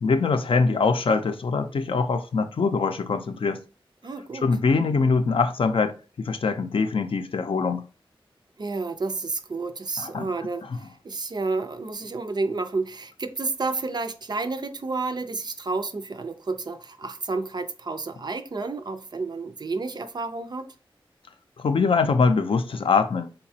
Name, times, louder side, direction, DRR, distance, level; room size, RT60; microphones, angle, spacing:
voice 1, 0.0-3.6 4.4-7.8 10.0-10.3 10.7-10.8 21.6-23.3, left 4 dB, 70° left, 0.4 m, -23 dB
voice 2, 4.0-4.5 8.6-20.7, right 3 dB, 50° right, 0.4 m, -30 dB
4.0 x 2.2 x 2.7 m
wide cardioid pair, 60°, 9 cm